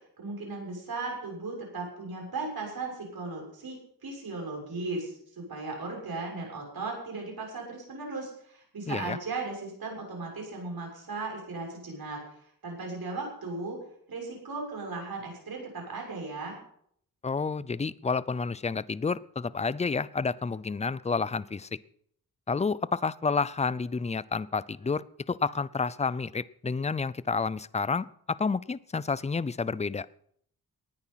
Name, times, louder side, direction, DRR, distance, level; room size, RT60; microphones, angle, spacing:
voice 1, 0.2-13.8 14.1-16.6, right 3 dB, 70° right, 0 dB, 6.9 m, -37 dB
voice 2, 8.9-9.2 17.2-21.7 22.5-30.1, left 4 dB, 20° left, 19 dB, 0.5 m, -30 dB
19.0 x 10.0 x 5.8 m, 0.66 s
wide cardioid pair, 115°, 37 cm